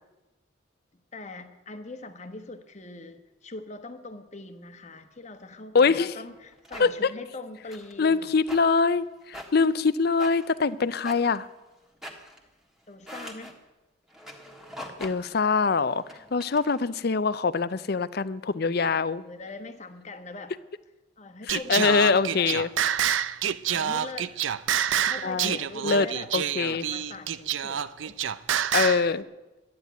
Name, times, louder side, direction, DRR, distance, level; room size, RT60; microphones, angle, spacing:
voice 1, 1.1-8.3 12.9-13.5 18.9-20.5 21.2-22.6 23.7-24.3 25.0-26.3 26.7-28.2, left 3 dB, 35° left, 8 dB, 1.1 m, -42 dB
voice 2, 5.7-6.1 6.8-7.1 8.0-11.5 15.0-16.0 16.3-19.2 21.5-22.7 25.2-26.1 26.3-26.8 28.7-29.2, left 4 dB, 50° left, 16 dB, 0.5 m, -24 dB
sound 1, 6.3-6.9 7.7-8.0 8.4-8.9 9.2-9.8 10.2-11.5 11.8-12.5 12.9-13.5 14.1-15.4 15.8-16.9, equal, ahead, 1.5 m, -44 dB
Singing, 21.5-29.1, right 9 dB, 70° right, 0.5 m, -27 dB
12.5 x 9.9 x 9.2 m, 1.1 s
head